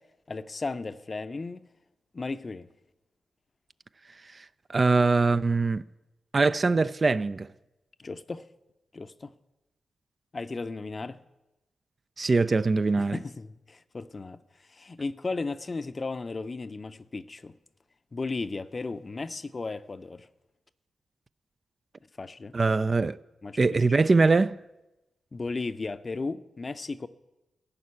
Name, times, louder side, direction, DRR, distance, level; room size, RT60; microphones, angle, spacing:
voice 1, 0.3-1.7 2.1-2.7 8.0-8.5 8.9-9.3 10.3-11.2 13.0-14.4 14.7-17.5 18.1-20.3 22.2-22.5 23.4-23.8 25.3-27.1, left 3 dB, 45° left, 0.5 m, -35 dB
voice 2, 4.7-5.9 6.3-7.5 12.2-13.2 22.5-23.2 23.6-24.6, right 3 dB, 45° right, 0.3 m, -22 dB
14.0 x 5.4 x 8.3 m
supercardioid pair, 45°, 0 cm